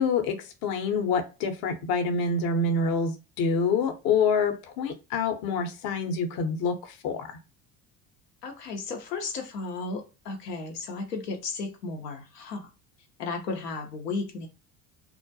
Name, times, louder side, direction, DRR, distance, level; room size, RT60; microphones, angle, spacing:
voice 1, 0.0-7.4, left 4 dB, 50° left, 0.7 m, -27 dB
voice 2, 8.4-12.7 13.2-14.5, left 4 dB, 90° left, 0.6 m, -34 dB
2.2 x 2.1 x 2.6 m
hypercardioid pair, 70°, 47 cm